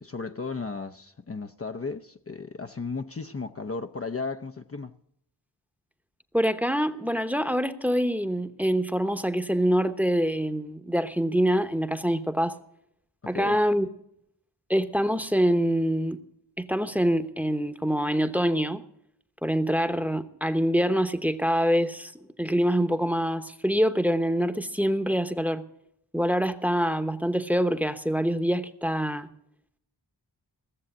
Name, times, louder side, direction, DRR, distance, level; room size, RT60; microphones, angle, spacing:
voice 1, 0.0-4.9 13.2-13.6, left 4 dB, 35° left, 0.6 m, -35 dB
voice 2, 6.3-12.6 13.3-13.9 14.7-16.2 16.6-18.8 19.4-22.1 22.4-25.6 26.1-29.3, equal, 5° right, 1.0 m, -25 dB
16.5 x 7.1 x 7.8 m
cardioid pair, 45°, 42 cm